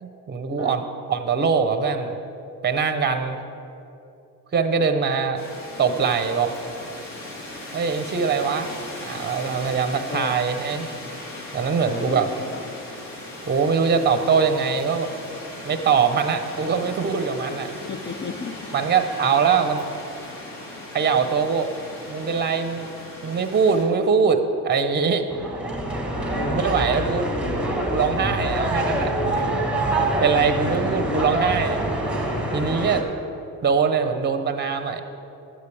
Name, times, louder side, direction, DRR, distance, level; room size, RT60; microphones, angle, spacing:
voice 1, 0.0-2.1 2.6-3.4 4.5-5.4 5.8-6.6 7.7-8.7 9.0-10.9 11.5-12.3 13.4-15.1 15.6-17.7 18.7-19.8 20.9-21.7 22.1-22.9 23.2-25.2 26.5-27.3 27.9-29.5 30.2-31.8 32.5-33.1 33.6-35.0, right 6 dB, 25° right, 8 dB, 0.8 m, -22 dB
sound 1, 5.4-23.8, left 2 dB, 45° left, 2.5 m, -38 dB
voice 2, 10.1-10.4 11.8-12.7 17.9-18.5 26.3-26.6 30.7-31.4, left 4 dB, 25° left, 5 dB, 0.5 m, -34 dB
sound 2, 25.3-33.0, right 1 dB, ahead, 1.3 m, -25 dB
12.5 x 8.2 x 3.4 m, 2.8 s
hypercardioid pair, 65°, 45 cm